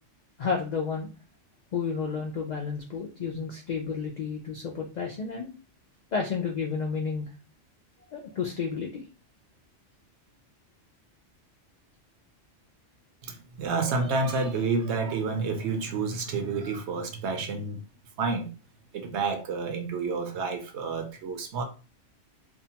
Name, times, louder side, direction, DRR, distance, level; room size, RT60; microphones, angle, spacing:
voice 1, 0.4-1.1 1.7-5.5 6.1-7.3 8.1-9.0, left 5 dB, 70° left, 0.4 m, -31 dB
voice 2, 13.2-17.8 18.2-18.5 18.9-21.6, right 4 dB, 70° right, 0.9 m, -29 dB
2.7 x 2.2 x 2.8 m
omnidirectional pair, 1.2 m